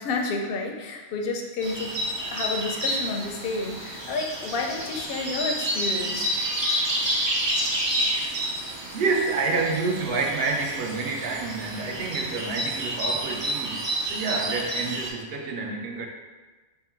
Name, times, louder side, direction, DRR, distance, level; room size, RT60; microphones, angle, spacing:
voice 1, 0.0-6.3, left 3 dB, 60° left, 2 dB, 0.6 m, -30 dB
sound 1, 1.6-15.1, right 1 dB, 45° right, 0.3 m, -29 dB
voice 2, 8.9-16.1, right 4 dB, 65° right, 2 dB, 0.7 m, -28 dB
3.7 x 2.1 x 4.3 m, 1.3 s
omnidirectional pair, 1.2 m